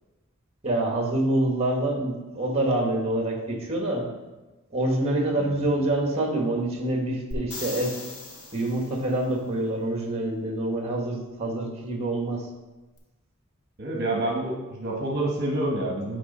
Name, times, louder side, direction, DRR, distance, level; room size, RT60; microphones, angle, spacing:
voice 1, 0.6-4.1 4.7-8.0 8.5-12.4, right 1 dB, 30° right, 1 dB, 1.3 m, -26 dB
voice 2, 5.4-5.7 13.8-16.2, right 1 dB, 50° right, -1 dB, 1.1 m, -28 dB
sound 1, 7.3-9.1 13.0-13.1, left 2 dB, 80° left, 1.7 m, -39 dB
9.8 x 3.5 x 5.3 m, 1.1 s
head